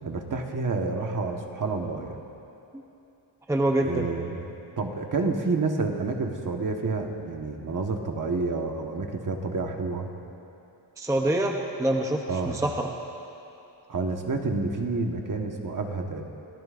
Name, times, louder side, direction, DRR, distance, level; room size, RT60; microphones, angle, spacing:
voice 1, 0.0-2.2 3.8-10.1 12.3-12.6 13.9-16.2, right 3 dB, 40° right, 2 dB, 1.4 m, -29 dB
voice 2, 3.5-4.1 11.0-12.9, right 1 dB, 5° right, 2 dB, 0.7 m, -25 dB
29.5 x 16.5 x 2.6 m, 2.9 s
wide cardioid pair, 145°, 49 cm